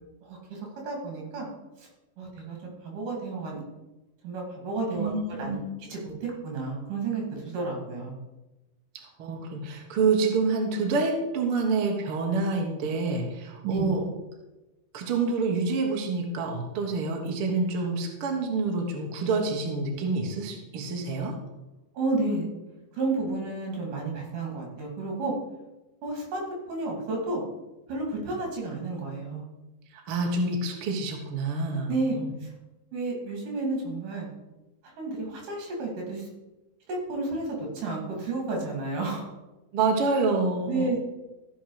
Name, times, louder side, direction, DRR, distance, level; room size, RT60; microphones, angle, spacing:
voice 1, 0.2-1.5 1.8-1.9 2.2-3.6 4.2-8.1 13.6-13.9 22.0-22.5 22.9-25.3 26.0-26.4 26.7-27.4 27.9-29.4 31.9-32.5 32.9-34.3 35.0-36.3 36.9-39.3 40.7-41.0, right 3 dB, 75° right, 0 dB, 4.0 m, -31 dB
voice 2, 4.9-5.7 9.2-14.0 14.9-21.3 29.9-32.3 39.7-41.0, right 3 dB, 55° right, 1 dB, 1.8 m, -27 dB
14.5 x 5.5 x 4.9 m, 1.0 s
omnidirectional pair, 3.8 m